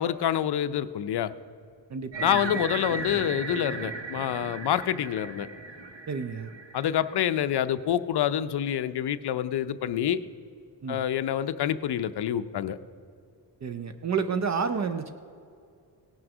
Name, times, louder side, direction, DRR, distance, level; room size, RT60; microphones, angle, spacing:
voice 1, 0.0-1.3 2.2-5.5 6.7-10.2 10.9-12.8, left 10 dB, 65° left, 12 dB, 0.5 m, -27 dB
voice 2, 1.9-2.5 6.1-6.5 10.8-11.0 13.6-15.1, right 6 dB, 40° right, 9 dB, 0.4 m, -30 dB
sound 1, 2.1-7.3, right 3 dB, 75° right, 1.1 m, -36 dB
17.5 x 6.2 x 6.0 m, 2.5 s
wide cardioid pair, 175°, 44 cm